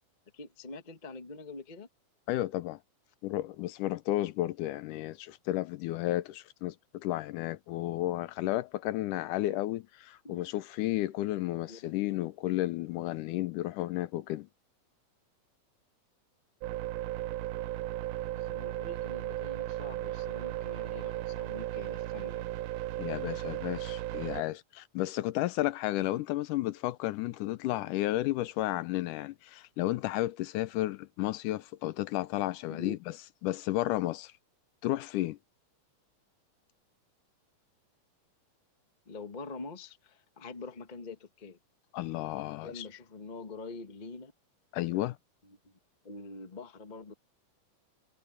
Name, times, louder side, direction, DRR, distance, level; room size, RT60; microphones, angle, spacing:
voice 1, 0.3-1.9 10.2-10.4 11.7-11.9 18.3-22.5 32.7-33.0 39.0-41.6 42.5-44.3 44.9-45.0 45.4-45.7 46.0-47.1, left 3 dB, 30° left, 0.7 m, -45 dB
voice 2, 2.3-2.8 3.2-14.5 23.0-33.0 33.4-34.3 34.8-35.4 41.9-42.9 44.7-45.2, left 16 dB, 80° left, 2.2 m, -32 dB
sound 1, 16.6-24.4, right 15 dB, 80° right, 2.2 m, -36 dB
omnidirectional pair, 3.6 m